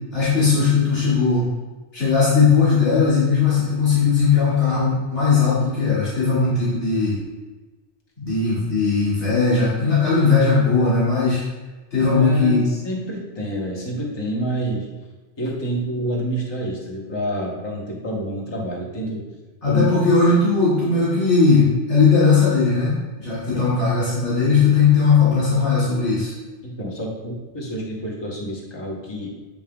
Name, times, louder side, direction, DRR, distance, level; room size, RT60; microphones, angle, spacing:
voice 1, 0.1-1.4 1.9-7.2 8.2-11.4 11.9-12.6 19.6-26.3, left 4 dB, 75° left, -11 dB, 2.6 m, -18 dB
voice 2, 12.0-14.9 15.4-19.3 19.7-19.8 23.5-23.7 26.6-29.4, right 1 dB, 25° left, -2 dB, 1.0 m, -28 dB
8.5 x 5.5 x 2.3 m, 1.2 s
omnidirectional pair, 1.2 m